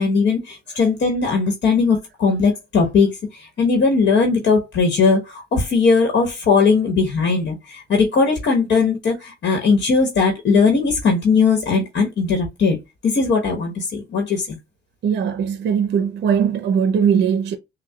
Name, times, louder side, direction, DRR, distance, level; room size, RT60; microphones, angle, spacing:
voice 1, 0.0-3.1 3.4-12.8 13.0-14.5, left 4 dB, 60° left, 1.2 m, -18 dB
voice 2, 15.0-17.6, right 7 dB, 60° right, 0.5 m, -19 dB
6.2 x 2.2 x 2.3 m
cardioid pair, 90°, 20 cm